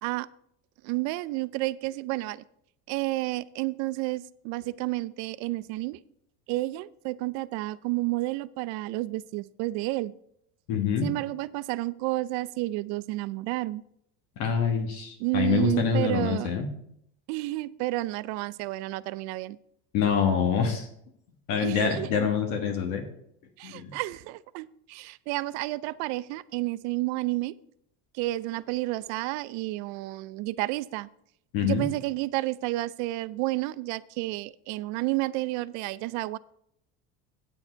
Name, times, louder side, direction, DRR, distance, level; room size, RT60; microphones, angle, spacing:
voice 1, 0.8-2.4 2.9-6.0 6.5-10.1 11.0-13.8 15.2-16.5 17.3-19.6 21.6-22.3 23.6-27.5 28.2-31.1 31.6-36.4, right 19 dB, 70° right, 18 dB, 0.5 m, -31 dB
voice 2, 10.7-11.1 14.4-16.7 19.9-20.9 21.5-23.0 23.6-23.9 31.5-31.8, left 7 dB, 75° left, 4 dB, 1.6 m, -26 dB
9.0 x 8.7 x 4.5 m, 0.72 s
supercardioid pair, 120°, 30 cm